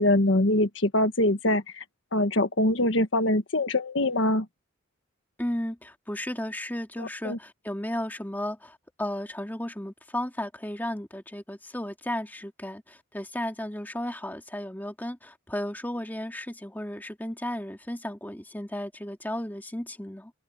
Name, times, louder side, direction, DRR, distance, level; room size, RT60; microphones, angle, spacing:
voice 1, 0.0-1.8 2.1-4.4 7.0-7.4, left 1 dB, 70° left, 1.4 m, -24 dB
voice 2, 5.4-20.3, left 1 dB, 10° left, 2.2 m, -34 dB
open air
head